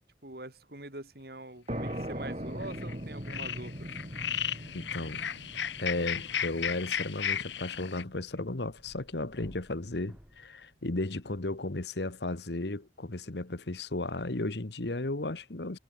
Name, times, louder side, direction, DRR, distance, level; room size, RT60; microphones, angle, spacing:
voice 1, 0.2-3.9, right 1 dB, 60° right, 4.6 m, -44 dB
sound 1, 1.7-2.1 2.6-2.9 3.2-8.0, left 9 dB, 90° left, 1.1 m, -35 dB
sound 2, 1.7-9.1, equal, 35° right, 5.5 m, -41 dB
voice 2, 4.7-5.2 5.8-15.8, left 2 dB, 75° left, 1.4 m, -34 dB
sound 3, 8.3-10.5, equal, 10° right, 4.5 m, -57 dB
head